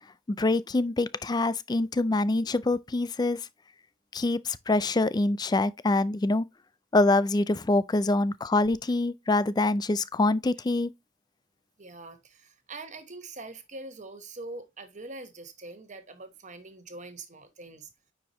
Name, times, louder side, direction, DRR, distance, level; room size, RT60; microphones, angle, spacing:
voice 1, 0.4-3.4 4.1-6.5 6.9-10.9, left 2 dB, 20° left, 0.3 m, -25 dB
voice 2, 11.8-17.9, right 2 dB, 35° right, 1.1 m, -43 dB
9.4 x 4.7 x 3.0 m
head